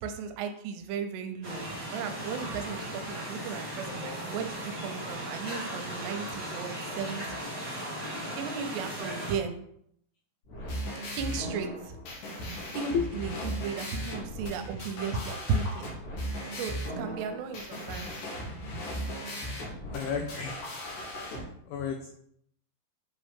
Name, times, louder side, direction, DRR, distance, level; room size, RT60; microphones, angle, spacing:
voice 1, 0.0-1.6 1.9-7.5 8.4-9.6 11.2-12.0 12.7-15.9 16.6-18.2, right 5 dB, 85° right, 7 dB, 2.8 m, -35 dB
sound 1, 1.4-9.3, right 1 dB, 55° right, 0.4 m, -37 dB
sound 2, 10.4-21.4, equal, 60° left, 2.6 m, -37 dB
voice 2, 19.9-20.6 21.2-22.1, left 6 dB, 85° left, 3 dB, 2.1 m, -33 dB
7.6 x 3.7 x 3.6 m, 0.70 s
omnidirectional pair, 4.9 m